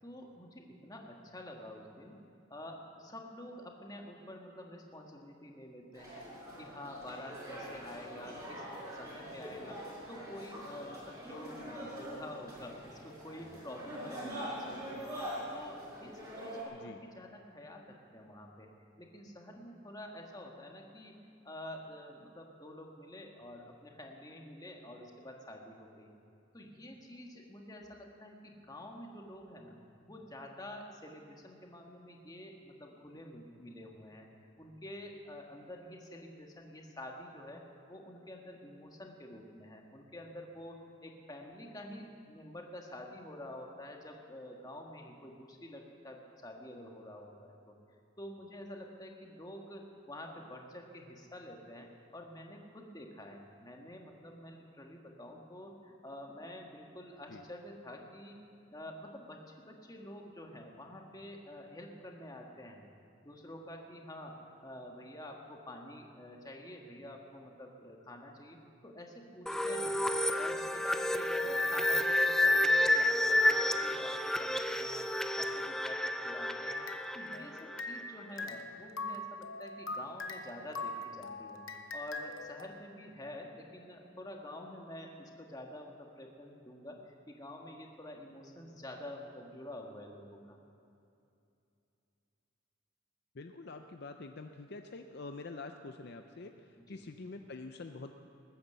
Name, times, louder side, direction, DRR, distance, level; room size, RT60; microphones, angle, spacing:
voice 1, 0.0-2.2 2.5-6.3 6.6-8.6 8.9-15.2 15.5-18.7 19.0-21.2 21.4-26.1 26.5-47.7 48.2-58.4 58.7-62.8 63.2-70.0 70.4-75.1 75.3-76.9 77.1-81.6 81.9-90.6 96.8-97.0, left 1 dB, 20° left, 1 dB, 1.6 m, -48 dB
sound 1, 5.9-16.6, equal, 20° right, 5.0 m, -44 dB
sound 2, 69.5-78.1, left 1 dB, 5° left, 0.4 m, -30 dB
sound 3, 76.7-78.1 78.4-82.7, left 2 dB, 85° left, 1.0 m, -42 dB
voice 2, 93.3-98.1, left 3 dB, 55° left, 6 dB, 0.6 m, -46 dB
20.5 x 9.4 x 6.9 m, 2.7 s
head